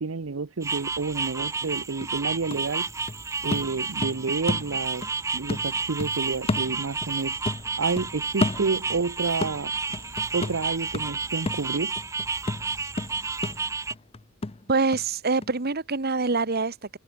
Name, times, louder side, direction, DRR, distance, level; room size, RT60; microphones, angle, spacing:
voice 1, 0.0-2.9 3.4-5.0 5.3-7.4 7.8-9.7 10.3-11.9, right 4 dB, 75° right, 0.8 m, -29 dB
sound 1, 0.6-13.9, right 4 dB, 15° right, 0.5 m, -31 dB
sound 2, 1.5-1.6 2.0-5.2 5.5-7.2 7.4-9.1 9.4-15.1 15.4-15.5, left 2 dB, 30° left, 0.7 m, -32 dB
sound 3, 1.8-11.3, left 1 dB, 65° left, 4.1 m, -55 dB
voice 2, 14.7-16.9, right 3 dB, 50° right, 1.4 m, -25 dB
head